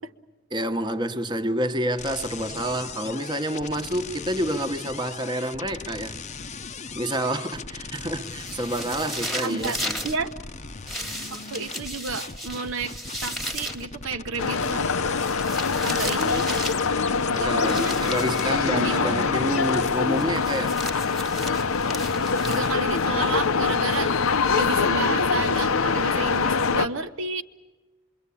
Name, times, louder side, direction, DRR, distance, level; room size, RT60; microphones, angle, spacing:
voice 1, 0.5-6.2 6.9-10.0 17.3-20.8, right 1 dB, 20° right, 1.2 m, -28 dB
sound 1, 2.0-19.9, left 5 dB, 35° left, 0.8 m, -39 dB
sound 2, 8.2-10.2 10.9-13.8 15.1-16.9 17.6-18.6 20.2-23.0, equal, ahead, 1.5 m, -35 dB
voice 2, 9.4-9.8 10.0-10.3 11.3-12.9 13.2-14.9 15.8-16.5 17.3-18.0 18.5-19.1 22.5-24.2 24.5-27.4, right 4 dB, 65° right, 1.0 m, -31 dB
sound 3, 14.4-26.9, left 5 dB, 75° left, 0.8 m, -24 dB
26.5 x 23.0 x 8.5 m
head